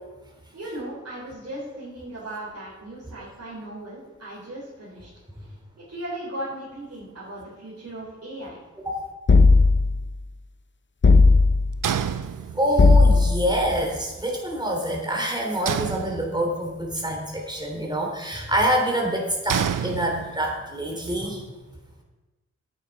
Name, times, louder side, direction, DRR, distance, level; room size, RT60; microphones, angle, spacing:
voice 1, 0.5-5.1 5.4-5.5 5.9-8.6, right 1 dB, 55° right, -8 dB, 3.9 m, -37 dB
sound 1, 9.3-10.0 11.0-11.8 12.8-13.5, left 3 dB, 40° left, 0.7 m, -15 dB
sound 2, 11.8-12.9 15.7-16.7 19.5-20.6, right 8 dB, 85° right, 0.6 m, -28 dB
voice 2, 12.5-21.4, right 1 dB, 15° right, -1 dB, 3.2 m, -26 dB
11.0 x 9.6 x 4.7 m, 1.1 s
cardioid pair, 55°, 31 cm